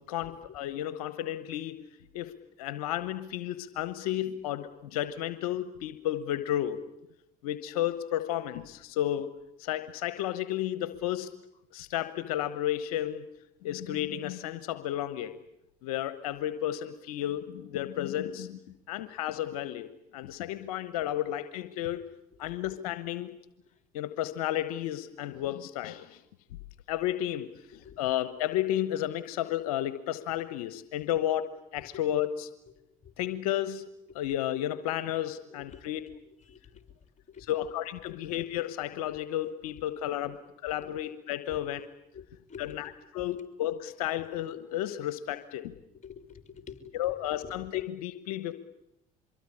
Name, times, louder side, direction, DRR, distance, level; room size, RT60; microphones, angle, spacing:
voice 1, 0.1-1.8 2.1-2.3 2.6-6.8 7.4-9.3 9.6-11.3 11.7-13.2 13.6-15.4 15.8-18.6 18.9-22.0 22.4-23.3 23.9-26.2 26.9-27.5 27.7-32.5 33.2-33.8 34.1-36.0 37.5-40.4 40.6-41.9 42.6-45.7 46.9-48.5, left 12 dB, 90° left, 12 dB, 1.1 m, -32 dB
voice 2, 22.4-22.8 26.5-26.6 27.7-28.0 31.8-32.0 33.0-33.1 35.5-37.5 38.1-38.3 40.2-40.3 40.8-40.9 41.5-41.6 42.1-43.2 46.0-47.5, left 7 dB, 40° left, 9 dB, 4.2 m, -50 dB
25.0 x 23.0 x 9.9 m, 0.83 s
hypercardioid pair, 70°, 18 cm